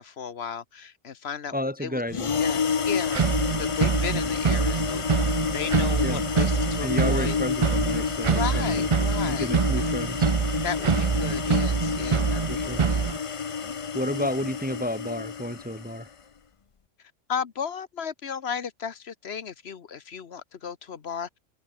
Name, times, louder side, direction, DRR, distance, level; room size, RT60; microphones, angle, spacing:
voice 1, 0.0-1.5 1.8-2.0 2.4-3.2 3.6-5.0 5.5-7.4 8.3-9.5 9.8-9.9 10.6-13.0 13.6-13.8 17.3-21.3, left 7 dB, 55° left, 1.4 m, -35 dB
voice 2, 1.5-2.4 6.0-6.2 6.8-8.9 9.2-10.3 12.5-12.8 13.9-16.1, equal, 5° right, 1.8 m, -31 dB
sound 1, 2.1-16.0, left 6 dB, 35° left, 0.5 m, -29 dB
sound 2, 3.1-13.2, right 6 dB, 40° right, 0.5 m, -25 dB
open air
omnidirectional pair, 1.3 m